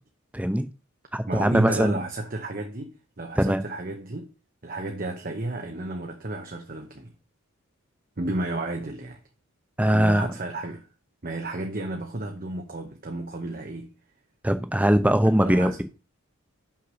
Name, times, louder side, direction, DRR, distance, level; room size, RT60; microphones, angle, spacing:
voice 1, 0.3-0.7 1.1-2.0 3.4-3.6 9.8-10.3 14.4-15.8, equal, 5° right, 0.7 m, -21 dB
voice 2, 1.2-4.3 4.6-7.1 8.2-9.2 9.8-10.9 11.2-13.9 15.4-15.8, right 2 dB, 40° right, 0.9 m, -32 dB
5.9 x 5.8 x 6.3 m
head